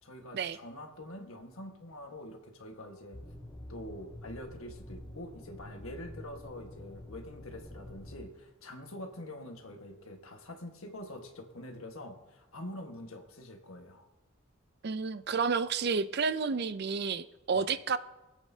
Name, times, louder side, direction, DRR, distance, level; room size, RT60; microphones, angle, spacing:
voice 1, 0.0-3.2 3.7-14.1 17.5-17.6, left 1 dB, 75° left, 1.5 m, -45 dB
sound 1, 3.1-8.2, left 1 dB, 15° left, 0.5 m, -47 dB
voice 2, 14.8-18.0, right 5 dB, 50° right, 0.4 m, -30 dB
25.0 x 8.4 x 2.8 m
head